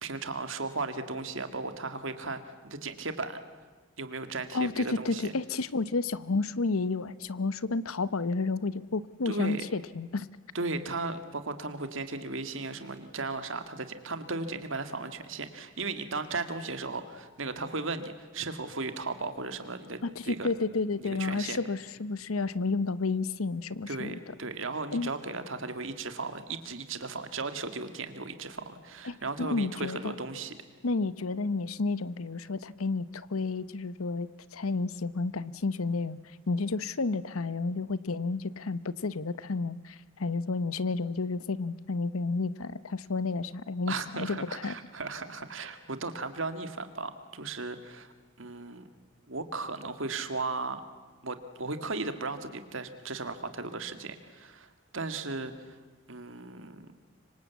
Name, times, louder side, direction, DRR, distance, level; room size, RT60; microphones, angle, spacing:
voice 1, 0.0-3.4 4.0-5.3 9.3-9.6 10.5-20.5 21.0-21.6 23.9-30.5 43.9-48.1 48.4-48.8 49.3-50.8 51.2-55.8 56.1-56.9, right 3 dB, 65° right, 9 dB, 2.0 m, -36 dB
voice 2, 4.5-10.3 20.0-24.2 24.9-25.1 29.0-30.1 30.8-36.2 36.5-44.7, left 3 dB, 85° left, 17 dB, 0.8 m, -31 dB
25.5 x 24.5 x 8.3 m, 1.3 s
head